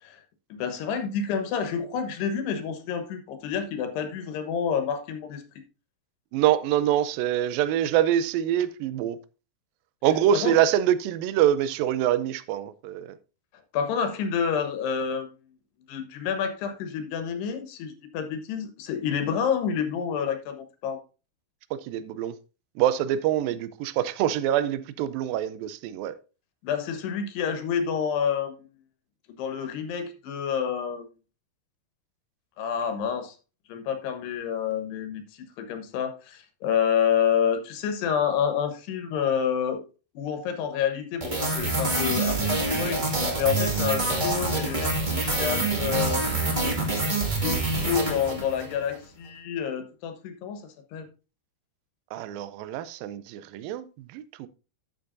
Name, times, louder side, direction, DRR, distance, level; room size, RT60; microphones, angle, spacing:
voice 1, 0.5-5.4 10.3-10.6 13.7-15.3 15.9-21.0 26.6-28.7 29.4-31.1 32.6-33.4 33.7-39.8 40.1-43.0 43.4-46.2 47.2-51.1, left 7 dB, 85° left, 3.3 m, -28 dB
voice 2, 6.3-9.2 10.0-13.2 21.7-22.3 22.8-26.2 52.1-53.9 54.1-54.5, right 11 dB, 80° right, 2.1 m, -25 dB
sound 1, 41.2-48.8, right 2 dB, 50° right, 0.5 m, -26 dB
11.5 x 8.2 x 2.6 m
omnidirectional pair, 4.6 m